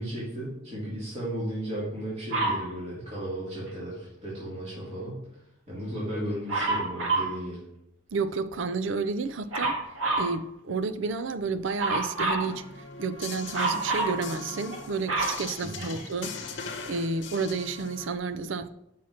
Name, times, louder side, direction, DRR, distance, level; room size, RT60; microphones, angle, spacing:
voice 1, 0.0-5.2 5.7-7.6 15.6-16.0, right 1 dB, 35° right, 2.5 m, -35 dB
Dog, 2.3-2.7 6.5-7.4 9.5-10.3 11.8-12.5 13.5-14.2 14.7-16.2 17.0-17.1, right 3 dB, 85° right, 1.8 m, -28 dB
voice 2, 8.1-9.8 10.2-16.4 16.8-18.7, right 4 dB, 70° right, 0.5 m, -31 dB
sound 1, 12.4-18.2, left 4 dB, 60° left, 0.9 m, -40 dB
5.7 x 5.7 x 6.3 m
head